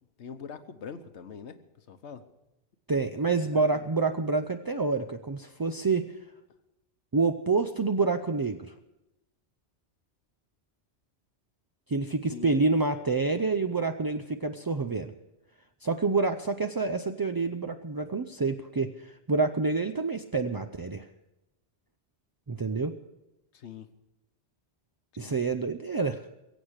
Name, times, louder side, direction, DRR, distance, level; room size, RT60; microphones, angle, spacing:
voice 1, 0.2-2.2 3.2-3.9 12.3-12.5 23.5-23.9 25.2-25.4, left 6 dB, 75° left, 10 dB, 1.3 m, -44 dB
voice 2, 2.9-6.1 7.1-8.7 11.9-15.1 15.8-21.1 22.5-22.9 25.2-26.2, right 3 dB, 40° right, 7 dB, 0.3 m, -28 dB
22.0 x 8.1 x 6.4 m, 0.93 s
omnidirectional pair, 1.2 m